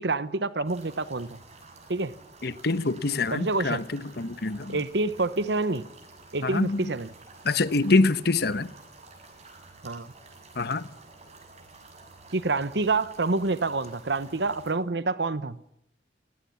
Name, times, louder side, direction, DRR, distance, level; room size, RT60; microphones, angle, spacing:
voice 1, 0.0-1.4 1.9-2.1 3.3-3.8 4.7-5.8 6.3-7.1 9.8-10.1 12.3-15.6, right 3 dB, 70° right, 1.0 m, -27 dB
sound 1, 0.6-14.7, right 3 dB, 40° right, 7.2 m, -50 dB
voice 2, 2.4-4.8 6.4-6.8 7.4-8.7 10.6-10.8, left 3 dB, 65° left, 1.1 m, -25 dB
29.5 x 18.0 x 7.2 m
head